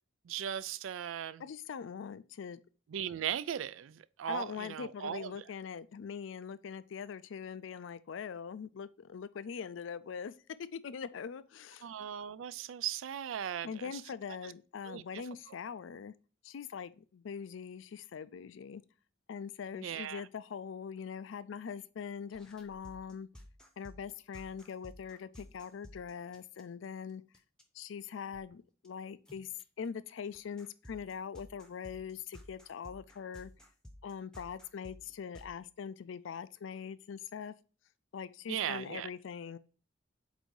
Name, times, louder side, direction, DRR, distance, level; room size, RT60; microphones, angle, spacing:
voice 1, 0.3-1.4 2.9-5.3 11.8-14.0 14.4-14.5 14.8-15.2 19.8-20.2 38.5-39.1, right 9 dB, 80° right, 0.4 m, -38 dB
voice 2, 1.4-2.6 4.3-10.3 10.6-11.9 13.6-16.1 16.4-18.8 19.3-23.3 23.8-27.2 27.7-29.5 29.8-33.5 34.0-37.5 38.1-39.6, left 6 dB, 75° left, 0.4 m, -42 dB
sound 1, 22.3-26.9 27.3-27.6 28.1-28.5 28.8-28.9 29.3-29.6 30.3-35.6, left 1 dB, 5° left, 0.7 m, -54 dB
8.0 x 2.7 x 4.6 m
head